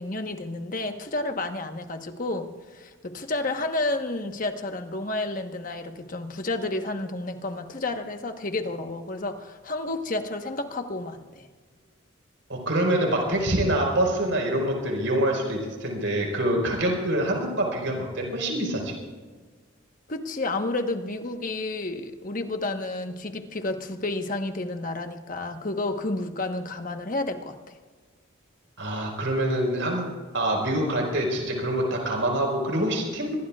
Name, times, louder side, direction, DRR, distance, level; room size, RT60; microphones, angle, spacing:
voice 1, 0.0-11.5 20.1-27.6, left 2 dB, 40° left, 5 dB, 1.2 m, -31 dB
voice 2, 12.5-18.9 28.8-30.0 30.3-33.3, right 1 dB, 70° right, 1 dB, 4.8 m, -25 dB
25.5 x 20.5 x 2.4 m, 1.5 s
head